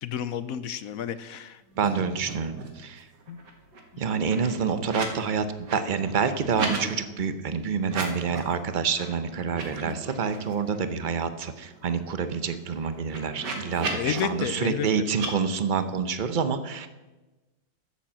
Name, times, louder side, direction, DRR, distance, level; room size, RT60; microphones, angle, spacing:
voice 1, 0.0-2.1 3.3-3.4 3.9-4.0 13.9-15.1, left 9 dB, 70° left, 14 dB, 0.9 m, -32 dB
sound 1, 1.7-1.9 2.1-2.8 3.1-5.2 5.5-6.8 7.8-8.5 8.9-9.1 9.4-10.8 11.2-11.3 11.5-14.2 15.1-15.3, right 3 dB, 75° right, 2.4 m, -36 dB
voice 2, 1.8-3.0 4.0-5.4 5.7-16.9, right 6 dB, 50° right, 10 dB, 0.5 m, -27 dB
12.5 x 7.3 x 7.3 m, 1.1 s
omnidirectional pair, 1.8 m